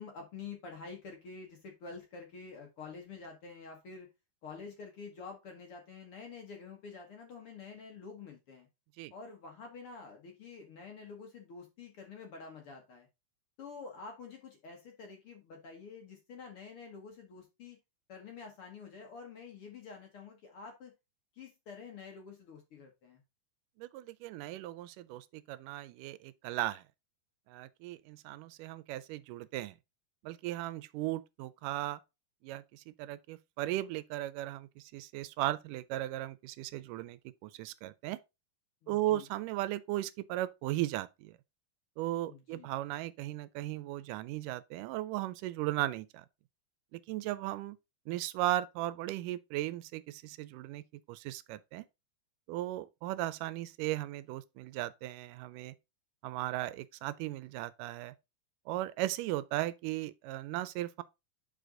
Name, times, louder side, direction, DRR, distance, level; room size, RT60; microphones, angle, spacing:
voice 1, 0.0-4.1 4.4-8.7 9.1-13.1 13.6-17.8 18.1-20.9 21.3-23.2 38.8-39.3 42.3-42.7, left 5 dB, 55° left, 1.7 m, -48 dB
voice 2, 23.8-26.8 27.5-29.8 30.2-32.0 32.4-38.2 38.9-41.4 42.0-46.3 46.9-47.8 48.1-51.9 52.5-55.8 56.2-58.2 58.7-61.0, right 15 dB, 85° right, 2.1 m, -37 dB
6.8 x 4.9 x 3.7 m
omnidirectional pair, 3.7 m